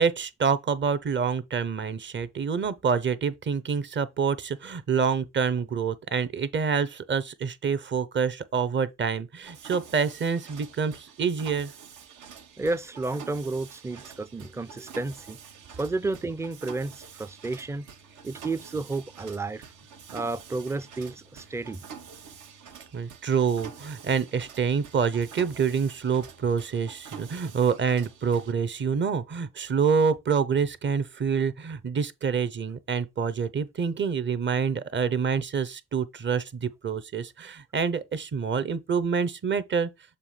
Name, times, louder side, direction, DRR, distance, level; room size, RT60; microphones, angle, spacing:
voice 1, 0.0-11.7 22.9-39.9, right 6 dB, 40° right, 0.8 m, -27 dB
Mechanisms, 9.4-28.5, right 6 dB, 80° right, 1.3 m, -47 dB
voice 2, 12.6-15.4 15.8-17.9 18.2-19.6 20.1-21.8, right 3 dB, 10° right, 0.4 m, -31 dB
6.9 x 2.8 x 5.6 m
cardioid pair, 90°, 30 cm